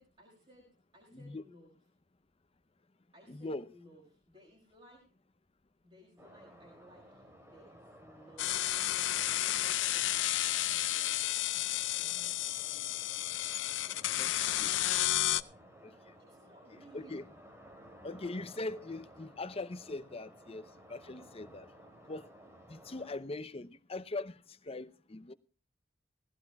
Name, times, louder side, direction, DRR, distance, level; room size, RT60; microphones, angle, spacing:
voice 1, 0.0-1.7 3.1-5.1 5.8-8.7 9.0-13.0 13.9-15.2 16.2-17.3, equal, 30° right, 5.2 m, -60 dB
voice 2, 3.3-3.6 14.1-14.3 14.6-14.7 15.8-16.1 16.9-17.2 18.0-21.7 22.1-22.3 22.7-25.3, left 2 dB, 30° left, 0.7 m, -41 dB
sound 1, 6.2-23.2, right 1 dB, 15° right, 2.8 m, -56 dB
sound 2, 8.4-15.4, left 14 dB, 80° left, 0.5 m, -32 dB
18.0 x 16.0 x 2.3 m
head